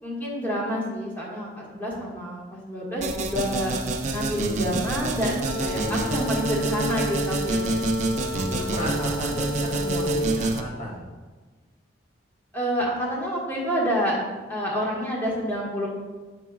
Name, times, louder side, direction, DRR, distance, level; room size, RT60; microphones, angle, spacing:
voice 1, 0.0-3.7 4.1-7.9 8.3-9.0 12.5-14.2 14.5-15.9, equal, 10° left, -5 dB, 1.4 m, -28 dB
sound 1, 3.0-10.6, right 2 dB, 40° right, 0.5 m, -27 dB
sound 2, 5.4-10.3, left 2 dB, 80° left, 1.2 m, -32 dB
voice 2, 8.7-11.0, equal, 45° left, -4 dB, 0.9 m, -33 dB
8.1 x 6.0 x 2.3 m, 1.3 s
head